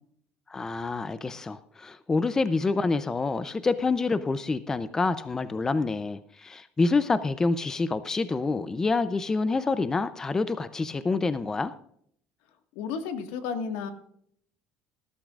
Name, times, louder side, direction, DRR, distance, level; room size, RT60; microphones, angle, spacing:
voice 1, 0.5-11.7, left 3 dB, 15° left, 13 dB, 0.5 m, -27 dB
voice 2, 12.7-13.9, left 6 dB, 85° left, 7 dB, 1.7 m, -32 dB
19.5 x 12.0 x 2.5 m, 0.66 s
cardioid pair, 145°, 3 cm